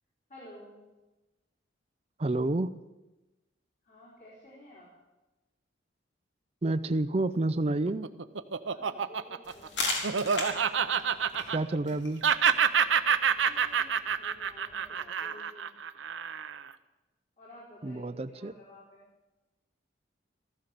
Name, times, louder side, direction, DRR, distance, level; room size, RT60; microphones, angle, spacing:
voice 1, 0.3-0.8 3.8-4.9 8.7-9.8 13.4-15.7 17.4-19.0, left 1 dB, 35° left, -6 dB, 4.5 m, -52 dB
voice 2, 2.2-2.7 6.6-8.1 11.5-12.2 17.8-18.5, right 2 dB, 30° right, 11 dB, 0.5 m, -29 dB
Laughter, 7.7-11.9 12.2-16.7, right 7 dB, 80° right, 0.7 m, -28 dB
sound 1, 9.4-15.0, left 3 dB, 70° left, 3.4 m, -39 dB
14.5 x 14.0 x 6.8 m, 1.1 s
head